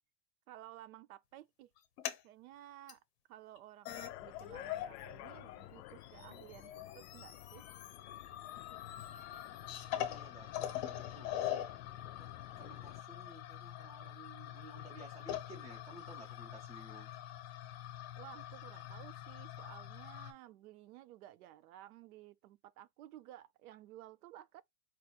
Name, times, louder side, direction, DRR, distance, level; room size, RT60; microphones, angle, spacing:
voice 1, 0.5-1.7 2.2-3.0 3.3-7.6 18.2-24.6, right 13 dB, 65° right, 0.6 m, -55 dB
sound 1, 1.8-2.2 2.9-3.0 3.6-3.7 3.8-5.1 5.4-20.3, left 12 dB, 45° left, 0.7 m, -44 dB
sound 2, 3.9-13.0, left 15 dB, 90° left, 0.5 m, -53 dB
voice 2, 9.9-11.8 12.2-17.1, right 2 dB, 5° right, 0.4 m, -55 dB
4.6 x 2.5 x 2.8 m
supercardioid pair, 175°, 47 cm